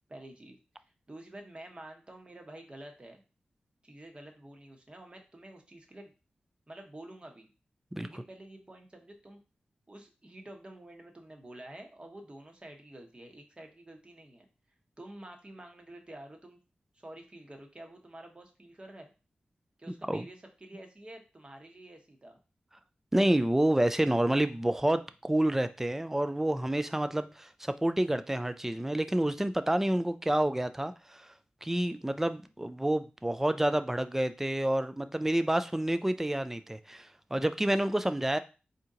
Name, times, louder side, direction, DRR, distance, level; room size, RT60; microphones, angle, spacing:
voice 1, 0.1-3.2 3.8-6.1 6.7-7.5 8.0-9.4 9.9-14.5 15.0-16.6 16.9-19.1 19.8-22.4, right 1 dB, 30° right, 3 dB, 1.0 m, -49 dB
voice 2, 23.1-31.3 31.6-38.4, right 1 dB, 10° right, 11 dB, 0.4 m, -28 dB
4.3 x 2.8 x 3.8 m, 0.32 s
cardioid pair, 60°, 3 cm